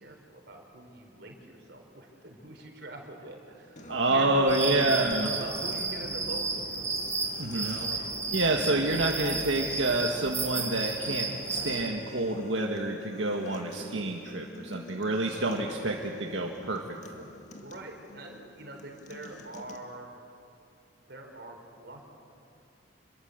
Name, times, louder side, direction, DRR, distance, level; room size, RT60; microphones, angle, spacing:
voice 1, 0.0-5.0 5.3-6.8 7.5-7.9 17.6-20.3 21.0-22.0, right 1 dB, 60° right, 2 dB, 4.5 m, -43 dB
Acoustic guitar, 3.8-19.8, left 2 dB, 40° left, 2.1 m, -46 dB
voice 2, 3.9-5.3 7.4-7.8 8.3-17.3, right 2 dB, 80° right, 0 dB, 1.8 m, -28 dB
sound 1, 4.5-11.9, right 3 dB, 15° right, 2.9 m, -33 dB
27.5 x 22.0 x 8.1 m, 2.6 s
head